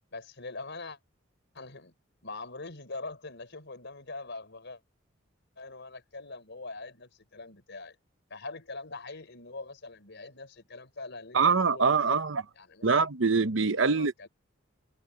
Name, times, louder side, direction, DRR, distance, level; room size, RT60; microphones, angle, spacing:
voice 1, 0.1-1.0 1.5-1.9 2.2-4.8 5.6-7.9 8.3-12.2 12.6-12.9 13.8-14.3, left 3 dB, 60° left, 5.0 m, -43 dB
voice 2, 11.3-12.4 12.8-14.1, right 5 dB, 70° right, 0.9 m, -24 dB
head